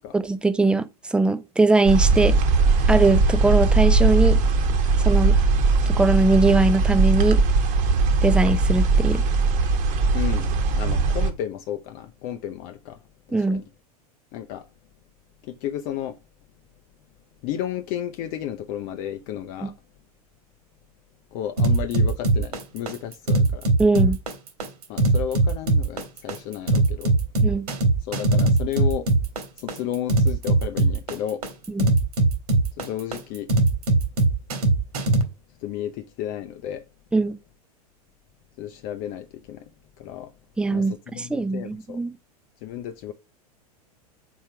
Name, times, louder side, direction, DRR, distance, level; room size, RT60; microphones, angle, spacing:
voice 1, 0.1-0.9 1.1-2.4 2.9-4.4 5.0-5.4 5.9-7.4 8.2-9.2 13.3-13.6 19.6-19.7 23.8-24.2 27.4-27.6 31.7-31.9 37.1-37.3 40.6-42.2, right 3 dB, 5° right, 0.5 m, -21 dB
sound 1, 1.8-11.3, right 4 dB, 40° right, 1.3 m, -19 dB
voice 2, 10.1-13.0 13.3-13.6 14.3-14.7 15.4-16.2 17.4-19.7 21.3-23.7 24.9-27.1 28.0-29.1 29.6-31.4 32.8-33.5 35.6-36.8 38.6-39.7 40.0-40.3 40.7-42.0 42.6-43.1, left 11 dB, 45° left, 0.6 m, -32 dB
sound 2, 21.6-35.2, right 2 dB, 75° right, 1.9 m, -20 dB
4.6 x 4.4 x 5.7 m
hypercardioid pair, 95°, 20 cm